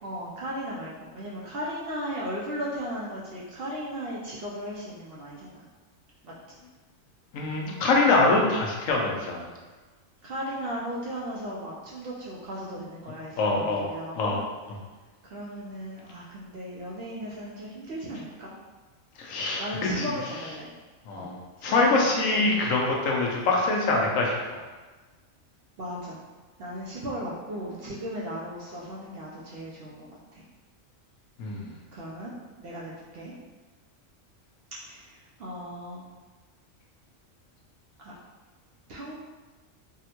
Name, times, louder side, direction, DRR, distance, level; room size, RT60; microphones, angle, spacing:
voice 1, 0.0-5.7 6.2-6.3 10.2-14.4 15.2-18.5 19.6-20.7 21.1-21.3 21.6-22.5 25.8-26.2 26.6-30.4 31.9-33.3 34.8-36.0 38.0-38.1 38.9-39.2, equal, 65° right, -5 dB, 0.6 m, -36 dB
voice 2, 7.3-9.5 13.4-13.8 14.2-14.4 19.2-19.6 20.0-20.1 21.1-21.3 21.6-24.6 31.4-31.7, left 3 dB, 80° left, -1 dB, 1.0 m, -24 dB
3.6 x 2.1 x 2.8 m, 1.3 s
omnidirectional pair, 1.4 m